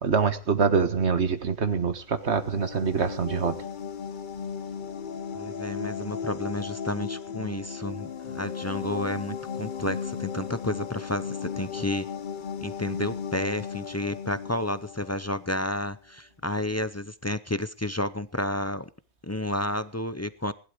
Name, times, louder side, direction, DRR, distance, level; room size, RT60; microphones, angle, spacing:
voice 1, 0.0-3.7, right 5 dB, 50° right, 1.7 m, -25 dB
sound 1, 2.1-15.7, left 6 dB, 40° left, 0.8 m, -36 dB
voice 2, 5.3-12.1 12.6-18.9 19.2-20.5, left 1 dB, 20° left, 0.4 m, -31 dB
19.0 x 12.0 x 5.1 m
omnidirectional pair, 1.5 m